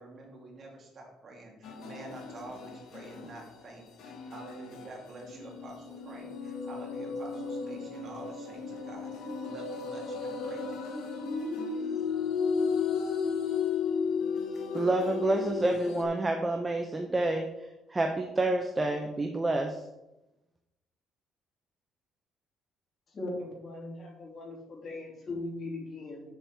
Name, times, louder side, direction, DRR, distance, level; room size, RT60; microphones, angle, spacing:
voice 1, 0.0-10.9, right 2 dB, 40° right, 2.7 m, -48 dB
sound 1, 1.6-3.5 4.0-16.0, left 5 dB, 75° left, 1.5 m, -34 dB
voice 2, 14.7-17.5 17.9-19.8, right 2 dB, 15° right, 0.8 m, -28 dB
voice 3, 23.1-26.2, left 2 dB, 40° left, 2.9 m, -39 dB
7.1 x 5.4 x 7.4 m
cardioid pair, 135°, 0 cm